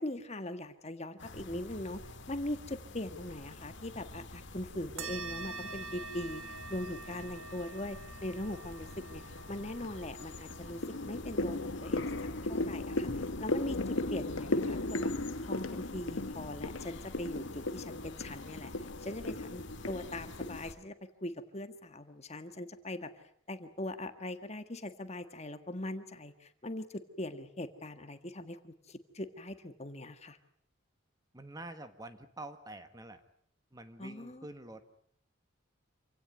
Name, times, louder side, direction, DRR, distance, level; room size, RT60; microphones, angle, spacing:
voice 1, 0.0-6.4 6.7-9.2 9.5-10.8 11.0-12.1 12.4-15.1 15.4-18.7 19.0-23.1 23.5-30.4 34.0-34.5, left 1 dB, 30° left, 8 dB, 1.7 m, -41 dB
sound 1, 1.2-20.7, left 2 dB, 55° left, 2.1 m, -48 dB
sound 2, 5.0-13.9, right 4 dB, 75° right, 2.2 m, -47 dB
sound 3, 8.9-9.4 9.8-20.6, left 2 dB, 70° left, 1.1 m, -36 dB
voice 2, 31.3-33.2 33.7-34.9, right 2 dB, 15° right, 9 dB, 1.4 m, -47 dB
27.5 x 17.5 x 9.5 m, 0.67 s
head